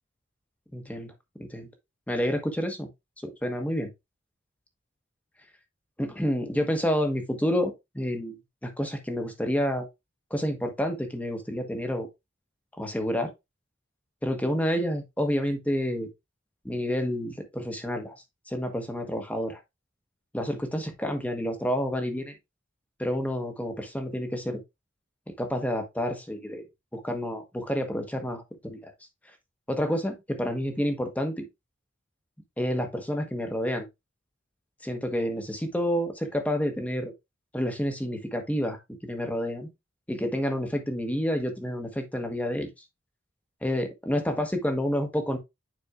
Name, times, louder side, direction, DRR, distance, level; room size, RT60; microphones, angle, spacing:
voice 1, 0.7-1.1 1.4-1.7 2.1-2.9 3.4-3.9 6.0-8.4 8.6-9.9 10.3-12.1 12.8-13.3 14.2-16.1 16.6-18.2 18.5-19.6 20.3-22.3 23.0-24.6 25.4-26.6 26.9-28.9 29.7-31.5 32.6-33.8 34.8-37.1 37.5-39.7 40.1-42.7 43.6-45.4, equal, 10° left, 1.1 m, -29 dB
9.4 x 4.3 x 2.3 m
head